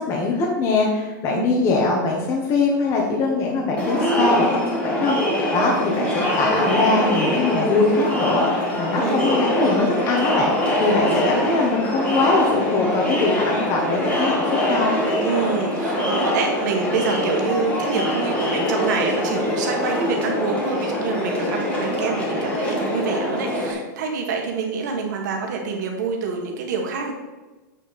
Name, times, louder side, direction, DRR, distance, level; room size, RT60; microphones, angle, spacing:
voice 1, 0.0-15.0, left 3 dB, 30° left, -2 dB, 1.2 m, -22 dB
Crowd, 3.8-23.7, left 1 dB, 10° left, 1.6 m, -23 dB
voice 2, 10.8-11.4 15.2-27.1, right 5 dB, 65° right, 1 dB, 1.8 m, -26 dB
8.2 x 5.7 x 4.2 m, 1.2 s
supercardioid pair, 165°, 10 cm